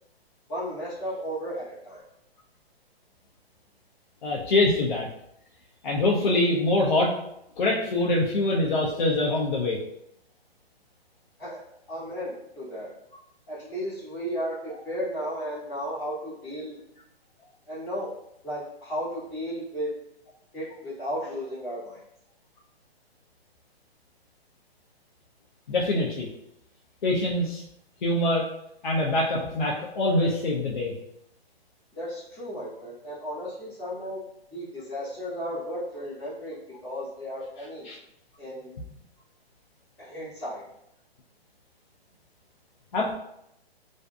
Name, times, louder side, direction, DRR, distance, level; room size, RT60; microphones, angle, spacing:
voice 1, 0.5-2.0 11.4-11.6 11.9-12.9 13.5-16.8 17.7-18.1 18.4-19.9 20.5-22.0 31.9-34.2 34.5-37.9 38.4-38.7 40.0-40.6, equal, 10° left, -14 dB, 0.7 m, -34 dB
voice 2, 4.2-5.1 5.8-7.1 7.6-9.8 25.7-26.3 27.0-27.6 28.0-28.5 28.8-30.9 37.8-38.0 42.9-43.1, left 2 dB, 50° left, -4 dB, 0.4 m, -24 dB
2.6 x 2.4 x 2.2 m, 0.78 s
hypercardioid pair, 170°, 31 cm